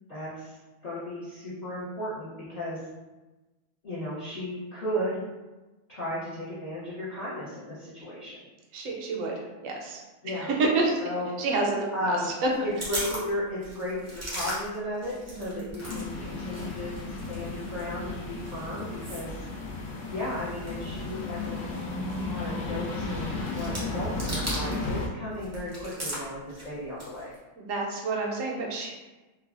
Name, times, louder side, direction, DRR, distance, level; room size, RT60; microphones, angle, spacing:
voice 1, 0.1-0.6 0.8-2.8 3.8-5.2 5.9-8.4 10.2-10.5 11.0-11.3 11.9-12.3 12.6-19.3 20.1-21.6 22.2-27.3, left 1 dB, 50° left, -11 dB, 0.5 m, -34 dB
voice 2, 8.7-10.0 10.6-10.9 11.4-12.5 15.3-15.7 27.6-28.9, right 3 dB, 65° right, -1 dB, 0.9 m, -29 dB
sound 1, 12.4-16.1 16.3-24.9 25.2-27.4, right 1 dB, 25° right, 0.3 m, -39 dB
sound 2, 15.8-25.1, left 2 dB, 75° left, 1.0 m, -34 dB
3.2 x 2.1 x 2.4 m, 1.1 s
omnidirectional pair, 1.7 m